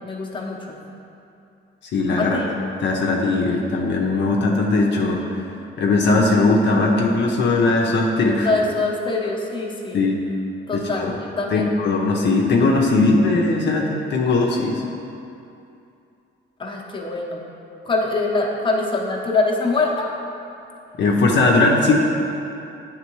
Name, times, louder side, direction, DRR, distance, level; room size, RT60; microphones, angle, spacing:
voice 1, 0.0-0.6 2.2-2.5 8.4-10.0 10.7-11.8 16.6-17.4 17.8-20.1, left 3 dB, 25° left, -2 dB, 0.9 m, -24 dB
voice 2, 1.9-2.4 2.8-5.4 5.8-8.5 9.9-10.2 10.7-11.1 11.5-14.8 21.0-21.9, left 3 dB, 65° left, -1 dB, 0.7 m, -19 dB
9.0 x 3.7 x 3.0 m, 2.7 s
cardioid pair, 90°, 20 cm